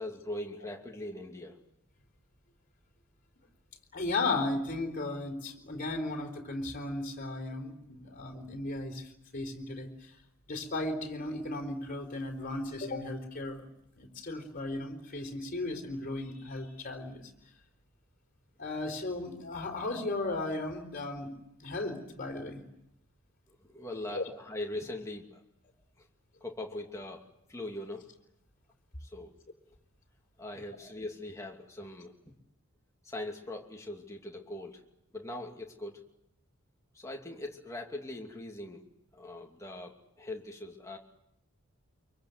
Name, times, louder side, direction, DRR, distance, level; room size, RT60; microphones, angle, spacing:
voice 1, 0.0-1.6 23.5-25.4 26.0-26.1 26.4-28.1 29.0-29.3 30.4-32.3 33.0-34.8 35.1-36.0 36.9-38.8 39.1-41.0, left 1 dB, 15° left, 0 dB, 2.7 m, -41 dB
voice 2, 3.9-9.9 10.5-13.6 14.0-17.2 18.6-21.3 21.6-22.6 24.1-24.2, left 2 dB, 40° left, 3 dB, 4.2 m, -35 dB
25.0 x 23.5 x 8.0 m, 0.82 s
head